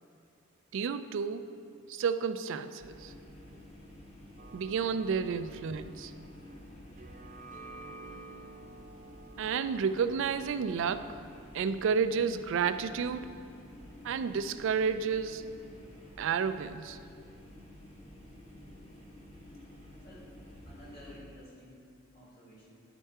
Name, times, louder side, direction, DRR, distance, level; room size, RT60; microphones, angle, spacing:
voice 1, 0.7-1.5 1.9-3.1 4.5-6.1 9.4-11.2 11.5-13.3 14.0-15.4 16.2-17.0, right 6 dB, 60° right, 12 dB, 0.3 m, -31 dB
sound 1, 2.8-21.2, left 1 dB, 30° left, 1.1 m, -51 dB
sound 2, 4.4-11.6, right 3 dB, 35° right, 0.7 m, -52 dB
voice 2, 20.7-21.8 22.1-22.7, left 1 dB, 45° left, -6 dB, 2.0 m, -52 dB
10.0 x 4.5 x 4.6 m, 2.4 s
head